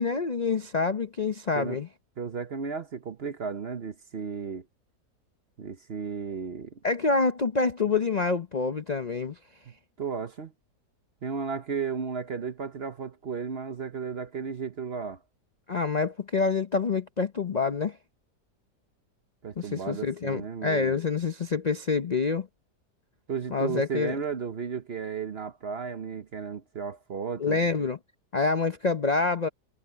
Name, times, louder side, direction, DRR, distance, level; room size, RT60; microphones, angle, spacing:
voice 1, 0.0-1.9 6.8-9.4 15.7-18.0 19.6-22.5 23.5-24.2 27.4-28.0 28.3-29.5, left 4 dB, 50° left, 0.5 m, -27 dB
voice 2, 2.2-4.6 5.6-6.8 10.0-10.5 11.2-15.2 19.4-21.0 23.3-27.9, right 6 dB, 45° right, 0.9 m, -34 dB
omnidirectional pair, 1.8 m